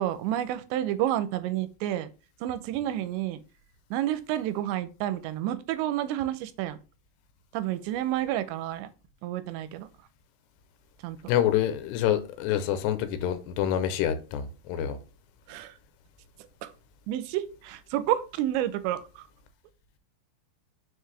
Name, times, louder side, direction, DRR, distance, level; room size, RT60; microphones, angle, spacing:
voice 1, 0.0-2.1 2.4-3.4 3.9-6.8 7.5-8.9 9.2-9.9 11.0-11.2 15.5-15.8 16.6-16.7 17.1-19.3, right 12 dB, 90° right, 2.9 m, -30 dB
voice 2, 11.3-15.0, left 10 dB, 80° left, 2.8 m, -27 dB
6.3 x 4.7 x 3.3 m
omnidirectional pair, 5.1 m